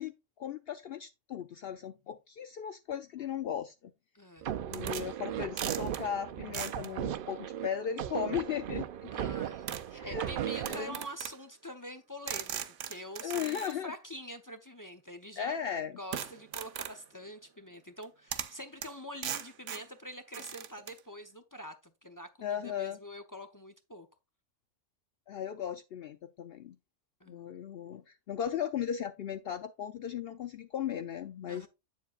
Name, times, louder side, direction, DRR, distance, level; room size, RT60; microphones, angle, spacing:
voice 1, 0.0-3.9 4.7-9.3 9.9-10.3 10.7-11.0 13.2-13.9 15.4-15.9 22.4-23.0 25.3-26.8 27.3-31.7, left 9 dB, 60° left, 0.7 m, -37 dB
voice 2, 4.1-4.5 9.1-12.6 12.8-15.6 16.0-24.1 27.2-27.5 31.5-31.7, equal, 25° left, 0.4 m, -45 dB
sound 1, 4.4-11.1, right 10 dB, 60° right, 0.6 m, -37 dB
sound 2, 4.7-5.1 5.6-6.0 6.5-6.9 8.3-8.4 9.7-9.9 10.6-11.4 12.3-13.7 16.1-17.0 18.0-18.1 18.3-18.6 18.8-18.9 19.2-19.9 20.3-21.0, right 9 dB, 80° right, 1.0 m, -39 dB
8.1 x 7.3 x 2.4 m
omnidirectional pair, 1.3 m